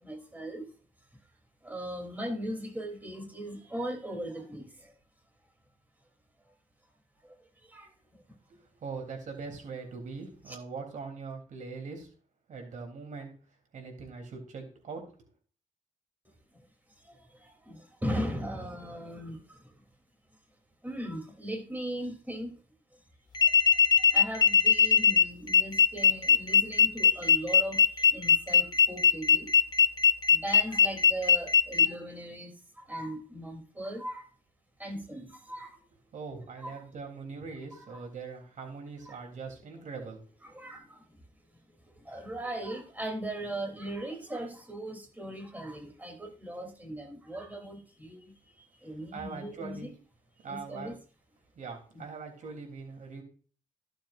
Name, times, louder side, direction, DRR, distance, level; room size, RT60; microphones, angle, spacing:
voice 1, 0.0-0.7 1.6-4.7 7.7-7.9 10.5-10.6 17.1-19.6 20.8-22.6 23.4-23.5 24.1-29.5 30.3-32.5 32.9-34.2 34.8-35.8 36.6-36.8 37.7-38.1 39.0-39.2 39.9-40.1 40.4-41.0 42.0-48.3 48.8-49.9 50.5-51.0 51.9-52.0, right 1 dB, 15° right, 2 dB, 3.2 m, -38 dB
voice 2, 8.5-12.1 12.5-13.3 13.7-15.0 36.1-40.2 49.1-49.9 50.4-50.9 51.6-53.2, right 4 dB, 75° right, 2 dB, 3.5 m, -41 dB
sound 1, 23.3-31.9, left 6 dB, 30° left, 1.0 m, -21 dB
15.5 x 7.4 x 2.6 m, 0.40 s
cardioid pair, 95°, 13 cm